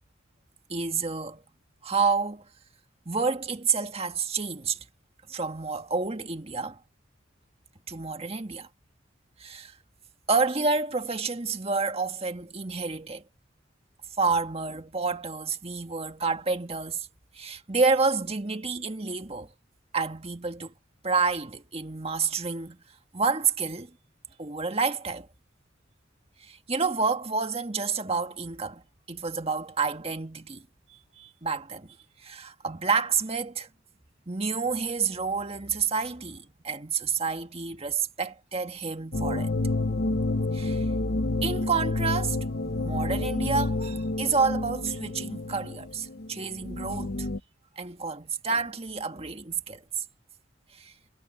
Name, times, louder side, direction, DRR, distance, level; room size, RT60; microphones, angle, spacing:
voice 1, 0.7-1.4 1.8-2.5 3.1-4.9 5.3-6.8 7.9-8.7 9.4-9.8 10.3-13.2 14.2-17.1 17.3-19.5 19.9-20.7 21.0-22.8 23.1-23.9 24.4-25.3 26.4-28.8 29.1-30.6 31.2-32.0 32.2-33.7 34.3-39.5 40.5-40.9 41.4-42.4 42.7-47.3 47.8-49.8 50.7-50.9, right 4 dB, 30° right, 1.7 m, -29 dB
sound 1, 39.1-47.4, left 2 dB, 50° left, 0.8 m, -29 dB
head